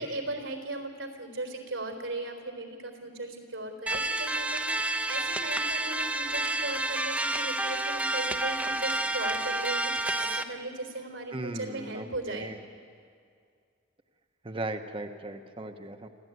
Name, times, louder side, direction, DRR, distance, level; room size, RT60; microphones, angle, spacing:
voice 1, 0.0-12.5, right 2 dB, 90° right, 4 dB, 4.0 m, -37 dB
sound 1, 3.9-10.4, right 2 dB, 5° right, 0.8 m, -29 dB
voice 2, 11.3-12.6 14.4-16.1, right 2 dB, 30° right, 6 dB, 1.0 m, -37 dB
26.0 x 15.0 x 9.5 m, 2.2 s
head